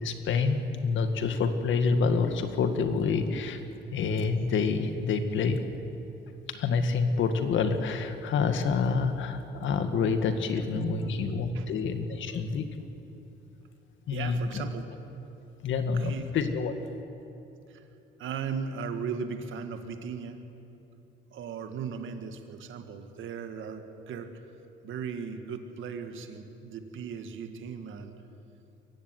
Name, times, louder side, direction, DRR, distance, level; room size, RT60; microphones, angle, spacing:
voice 1, 0.0-3.6 3.9-5.6 6.5-12.6 14.1-14.6 15.6-16.7, left 5 dB, 75° left, 8 dB, 1.9 m, -27 dB
voice 2, 10.7-11.8 12.2-12.3 14.1-14.9 15.9-16.3 17.7-17.9 18.2-20.4 21.3-24.3 24.8-28.1, right 6 dB, 80° right, 7 dB, 2.0 m, -37 dB
23.0 x 15.0 x 9.4 m, 2.9 s
cardioid pair, 90°, 20 cm